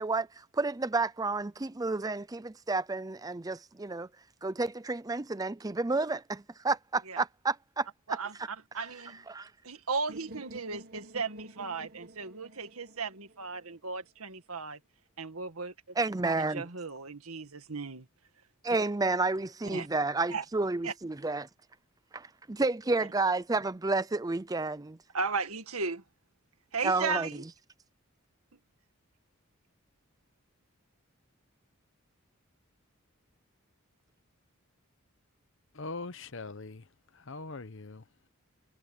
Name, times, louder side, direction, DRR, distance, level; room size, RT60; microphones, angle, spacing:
voice 1, 0.0-4.1 4.4-7.9 9.3-9.5 16.0-16.7 18.6-21.5 22.1-25.0 26.8-27.3, right 3 dB, 15° right, 0.5 m, -30 dB
voice 2, 8.1-9.2 9.6-14.8 15.2-15.7 16.5-18.1 19.7-19.9 20.3-20.4 20.8-20.9 25.1-26.0 26.7-27.4, right 4 dB, 90° right, 2.0 m, -36 dB
sound 1, 10.1-14.0, right 1 dB, 45° right, 1.6 m, -50 dB
voice 3, 35.7-36.8 37.1-38.0, left 3 dB, 60° left, 1.0 m, -41 dB
head